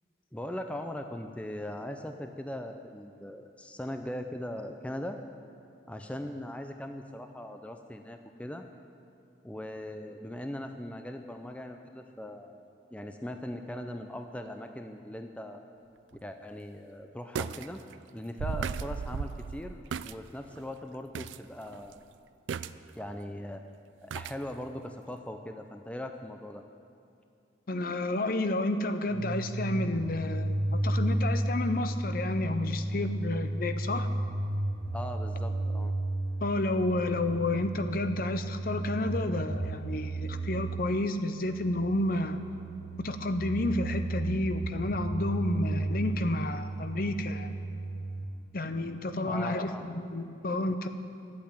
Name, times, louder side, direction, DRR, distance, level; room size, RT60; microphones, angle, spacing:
voice 1, 0.3-5.2 5.9-8.6 9.4-12.6 12.9-15.6 16.2-17.8 18.1-22.0 23.0-23.6 24.0-26.6 34.9-35.9 49.2-49.8, left 1 dB, 5° left, 6 dB, 0.5 m, -40 dB
sound 1, 16.1-16.2 17.4-17.7 17.9-18.0 18.4-20.2 20.6-20.7 21.2-21.4 21.7-21.9 22.5-23.1 24.1-24.4 24.8-24.9, right 6 dB, 85° right, 0.4 m, -35 dB
voice 2, 27.7-34.1 36.4-42.4 43.0-47.5 48.5-50.9, left 2 dB, 50° left, 9 dB, 0.6 m, -31 dB
sound 2, 29.1-48.3, right 1 dB, 55° right, 1.0 m, -33 dB
12.5 x 8.5 x 8.8 m, 2.5 s
head